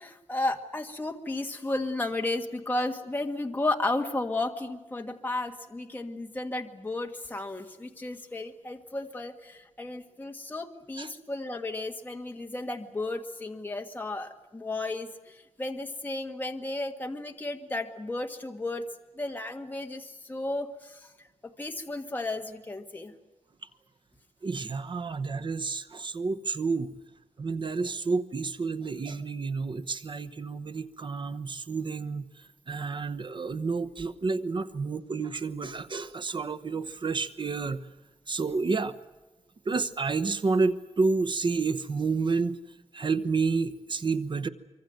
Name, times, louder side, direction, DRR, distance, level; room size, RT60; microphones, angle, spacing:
voice 1, 0.0-18.9 19.2-21.1 21.4-23.1, left 2 dB, 15° left, 3 dB, 1.8 m, -33 dB
voice 2, 24.4-26.9 27.4-37.8 38.3-39.0 39.6-42.6 42.9-44.5, right 4 dB, 45° right, 11 dB, 1.0 m, -30 dB
25.0 x 25.0 x 7.8 m, 1.1 s
wide cardioid pair, 175°, 12 cm